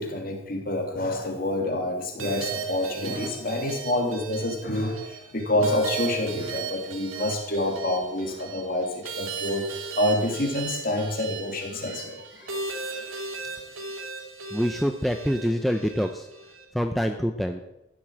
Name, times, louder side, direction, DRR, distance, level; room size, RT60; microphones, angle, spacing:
voice 1, 0.0-9.7 10.0-12.7, left 1 dB, 45° left, 2 dB, 3.0 m, -27 dB
sound 1, 2.2-16.7, right 5 dB, 85° right, 2.6 m, -36 dB
voice 2, 14.5-16.3 16.7-17.6, equal, ahead, 5 dB, 0.6 m, -25 dB
14.5 x 7.5 x 8.9 m, 0.90 s
head